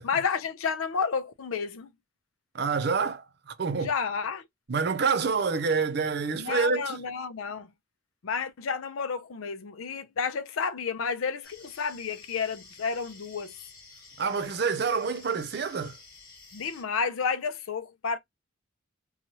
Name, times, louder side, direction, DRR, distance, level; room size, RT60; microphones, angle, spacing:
voice 1, 0.0-1.9 3.8-4.5 6.3-7.7 8.2-13.5 16.5-18.2, left 5 dB, 90° left, 0.5 m, -31 dB
voice 2, 2.5-3.9 4.7-7.0 14.2-16.0, right 5 dB, 50° right, 0.5 m, -27 dB
sound 1, 11.4-16.8, left 4 dB, 45° left, 1.2 m, -51 dB
3.0 x 2.3 x 2.7 m
head